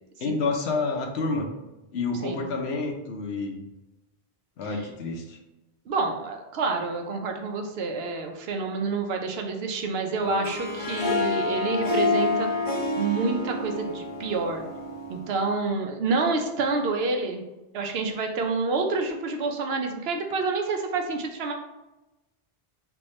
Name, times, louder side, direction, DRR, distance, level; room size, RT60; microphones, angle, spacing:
voice 1, 0.2-1.5 1.9-3.6 4.6-5.4, left 3 dB, 85° left, 2 dB, 1.0 m, -29 dB
voice 2, 5.9-12.5 12.9-14.6 15.1-17.4 17.7-21.5, right 3 dB, 75° right, 4 dB, 0.8 m, -28 dB
Harp, 10.2-15.4, left 3 dB, 40° left, 0.6 m, -28 dB
3.4 x 3.1 x 3.1 m, 1.0 s
omnidirectional pair, 1.1 m